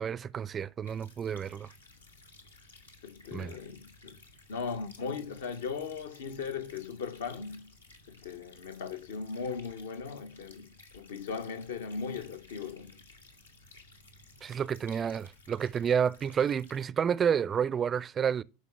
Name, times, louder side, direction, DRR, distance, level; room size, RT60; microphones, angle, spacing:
voice 1, 0.0-1.7 3.3-3.6 14.4-18.4, right 7 dB, 25° right, 0.4 m, -30 dB
sound 1, 0.8-16.8, left 2 dB, 80° left, 1.9 m, -56 dB
voice 2, 3.0-4.2 4.5-7.7 8.1-10.7 10.9-13.0, left 5 dB, 65° left, 1.0 m, -38 dB
11.0 x 5.1 x 6.1 m
figure-of-eight pair, 80°, 0 cm